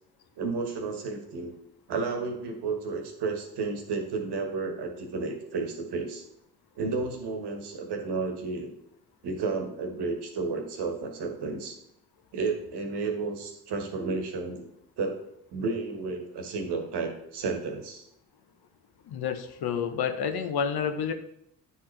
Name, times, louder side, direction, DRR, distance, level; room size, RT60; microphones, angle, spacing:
voice 1, 0.4-1.5 1.9-6.2 6.8-8.7 9.2-11.8 12.3-14.7 15.0-15.2 15.5-18.0, right 4 dB, 60° right, 4 dB, 1.4 m, -32 dB
voice 2, 19.1-21.1, left 7 dB, 55° left, 8 dB, 0.8 m, -29 dB
9.1 x 4.1 x 3.2 m, 0.74 s
hypercardioid pair, 45°, 46 cm